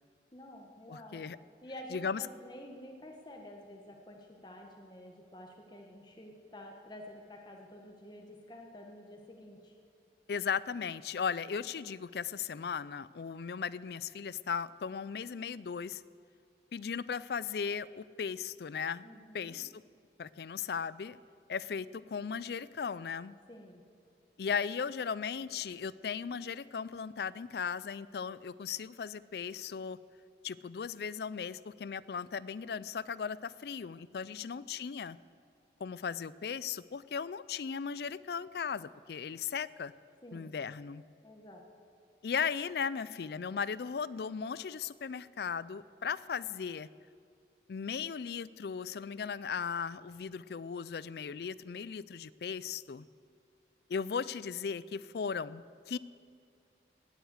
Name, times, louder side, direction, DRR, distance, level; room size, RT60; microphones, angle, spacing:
voice 1, 0.3-1.2 1.6-9.7 19.0-19.6 23.5-23.8 34.3-34.6 40.2-40.5 41.2-41.6, left 1 dB, 25° left, 1 dB, 1.2 m, -50 dB
voice 2, 0.9-1.4 1.9-2.2 10.3-16.0 16.7-19.1 19.3-19.8 20.2-21.2 21.5-23.4 24.4-30.0 30.4-35.2 35.8-39.9 40.3-41.0 42.2-46.9 47.7-53.1 53.9-56.0, left 6 dB, 60° left, 18 dB, 0.4 m, -37 dB
18.5 x 8.1 x 8.1 m, 2.3 s
head